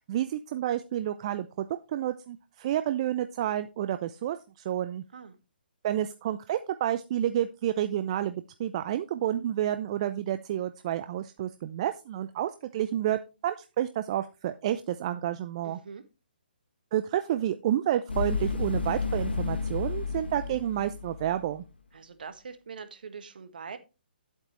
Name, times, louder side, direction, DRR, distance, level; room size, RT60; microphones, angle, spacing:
voice 1, 0.1-4.4 4.6-5.0 5.8-15.8 16.9-21.6, right 11 dB, 35° right, 10 dB, 0.5 m, -30 dB
voice 2, 15.6-16.0 21.9-23.8, right 5 dB, 60° right, 10 dB, 1.5 m, -43 dB
sound 1, 18.1-21.5, left 4 dB, 80° left, 1.5 m, -31 dB
10.5 x 8.2 x 3.1 m, 0.28 s
figure-of-eight pair, 135°, 5 cm